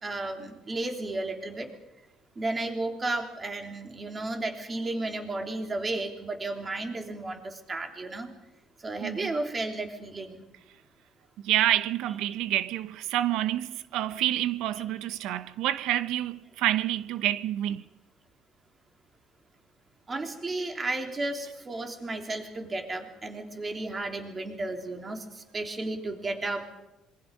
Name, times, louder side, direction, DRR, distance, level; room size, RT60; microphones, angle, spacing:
voice 1, 0.0-1.7 2.3-8.3 8.8-10.4 12.1-12.2 14.8-14.9 20.1-26.9, right 2 dB, 25° right, 3.4 m, -33 dB
voice 2, 11.4-17.8, right 13 dB, 80° right, 0.8 m, -28 dB
26.5 x 23.0 x 5.4 m
cardioid pair, 125°, 0 cm